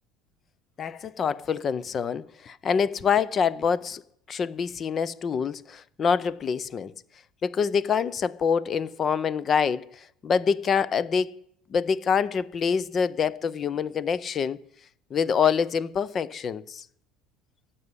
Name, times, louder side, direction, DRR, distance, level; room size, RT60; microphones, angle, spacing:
voice 1, 0.8-4.0 4.3-6.9 7.4-11.4 11.7-14.6 15.1-16.8, left 6 dB, 25° left, 0.5 m, -26 dB
15.0 x 6.9 x 9.8 m
cardioid pair, 165°, 0 cm